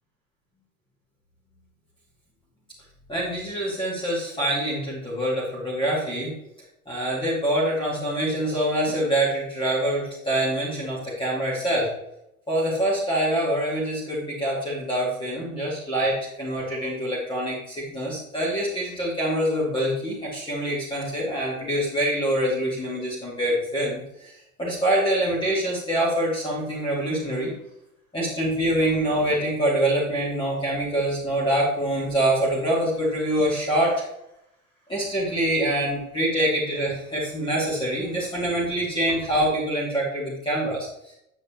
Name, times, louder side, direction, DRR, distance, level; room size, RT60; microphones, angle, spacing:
voice 1, 3.1-6.3 6.9-11.9 12.5-27.5 28.1-34.0 34.9-40.9, right 1 dB, 10° left, -7 dB, 2.6 m, -25 dB
9.3 x 7.4 x 3.1 m, 0.81 s
figure-of-eight pair, 85°, 42 cm